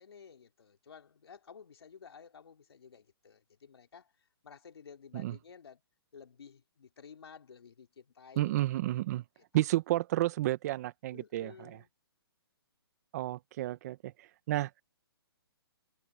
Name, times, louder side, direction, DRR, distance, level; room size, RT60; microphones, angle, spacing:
voice 1, 0.0-4.1 4.4-5.8 6.1-8.6 11.1-11.9, left 6 dB, 75° left, 3.8 m, -53 dB
voice 2, 8.4-9.2 9.5-11.8 13.1-14.7, right 15 dB, 40° right, 1.5 m, -31 dB
hypercardioid pair, 145°, 13 cm